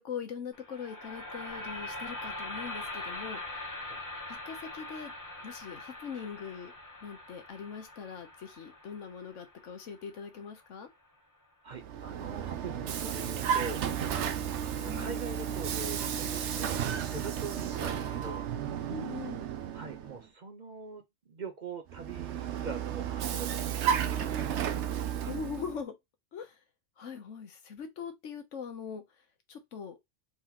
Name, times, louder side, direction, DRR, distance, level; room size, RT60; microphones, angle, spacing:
voice 1, 0.0-3.4 4.3-5.1 5.4-6.7 7.0-10.9 14.8-15.2 18.9-19.5 25.3-25.9 26.3-26.5 27.0-29.0 29.5-30.0, left 6 dB, 85° left, 1.3 m, -41 dB
sound 1, 0.5-10.6, left 2 dB, 20° left, 0.7 m, -42 dB
voice 2, 11.6-13.8 14.6-18.5 19.7-24.3, right 4 dB, 45° right, 0.8 m, -43 dB
Vehicle, 11.7-20.2 21.9-25.8, right 9 dB, 70° right, 0.9 m, -33 dB
4.1 x 3.8 x 2.9 m
omnidirectional pair, 1.2 m